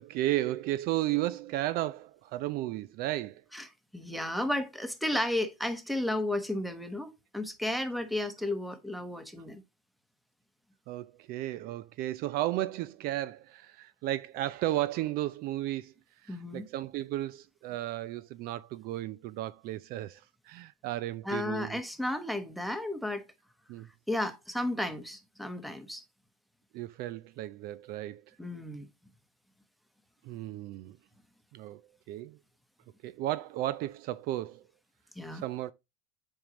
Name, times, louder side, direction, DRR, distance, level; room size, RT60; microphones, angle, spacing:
voice 1, 0.0-3.4 10.9-15.9 16.2-21.8 23.7-23.9 26.7-28.4 30.2-31.0 31.5-31.8 32.1-32.4 33.0-34.6 35.3-35.7, right 15 dB, 55° right, 0.4 m, -34 dB
voice 2, 3.9-9.6 16.3-16.7 21.2-23.2 24.1-26.0 28.4-28.9 35.2-35.4, left 1 dB, ahead, 1.1 m, -33 dB
7.0 x 5.4 x 3.0 m
supercardioid pair, 100°, 19 cm